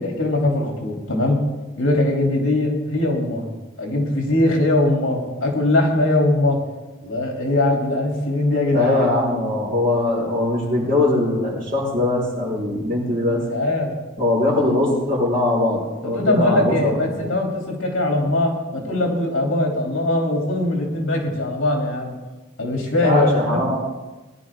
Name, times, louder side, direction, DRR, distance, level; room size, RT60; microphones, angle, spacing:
voice 1, 0.0-1.4 1.8-3.4 3.8-6.6 7.0-9.1 13.3-13.9 16.0-22.1 22.6-23.6, left 1 dB, 70° left, 0 dB, 3.1 m, -21 dB
voice 2, 8.7-13.4 14.2-17.2 23.0-23.8, left 2 dB, 45° right, -4 dB, 5.0 m, -21 dB
20.0 x 11.0 x 3.7 m, 1.2 s
head